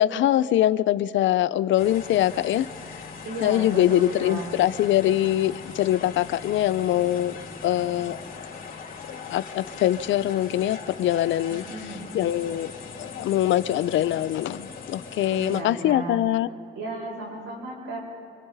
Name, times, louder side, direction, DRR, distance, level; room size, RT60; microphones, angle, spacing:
voice 1, 0.0-2.7 3.4-8.2 9.1-12.7 13.0-16.5, left 13 dB, 75° left, 15 dB, 0.6 m, -23 dB
sound 1, 1.8-15.6, left 5 dB, 45° left, 3.3 m, -40 dB
voice 2, 3.2-4.5 11.5-12.2 15.3-16.2 16.7-18.0, right 2 dB, 75° right, -2 dB, 6.9 m, -34 dB
29.5 x 24.5 x 4.1 m, 2.7 s
cardioid pair, 90°, 20 cm